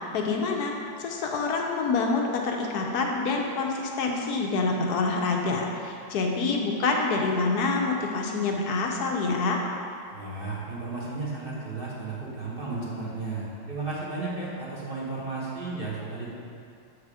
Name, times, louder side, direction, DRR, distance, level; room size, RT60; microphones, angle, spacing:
voice 1, 0.1-0.7 1.0-9.6, left 3 dB, 65° left, 1 dB, 1.0 m, -26 dB
voice 2, 10.1-16.3, right 3 dB, 35° right, -6 dB, 1.0 m, -34 dB
7.4 x 4.9 x 4.8 m, 2.4 s
omnidirectional pair, 2.2 m